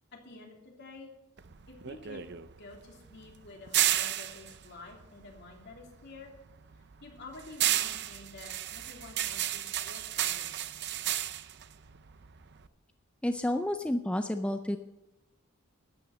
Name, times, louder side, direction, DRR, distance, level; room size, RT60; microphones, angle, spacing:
voice 1, 0.1-1.1 1.7-6.3 7.0-10.6, left 3 dB, 55° left, 1 dB, 2.9 m, -49 dB
sound 1, 1.4-5.9 6.2-12.7, right 12 dB, 55° right, 0.6 m, -32 dB
voice 2, 13.2-14.8, left 1 dB, 5° left, 7 dB, 0.4 m, -30 dB
12.5 x 8.9 x 7.0 m, 0.97 s
head